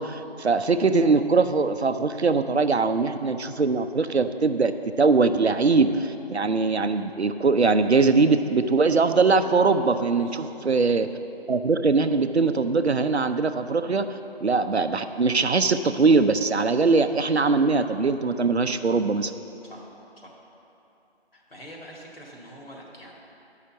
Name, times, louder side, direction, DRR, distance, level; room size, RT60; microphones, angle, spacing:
voice 1, 0.0-4.7 5.0-11.1 11.5-14.1 14.4-19.3, right 4 dB, 90° right, 10 dB, 0.6 m, -21 dB
voice 2, 10.2-10.5 19.6-19.9 20.2-20.4 21.3-23.1, equal, 65° left, -3 dB, 2.1 m, -45 dB
7.9 x 5.6 x 7.1 m, 2.8 s
figure-of-eight pair, 165°, 32 cm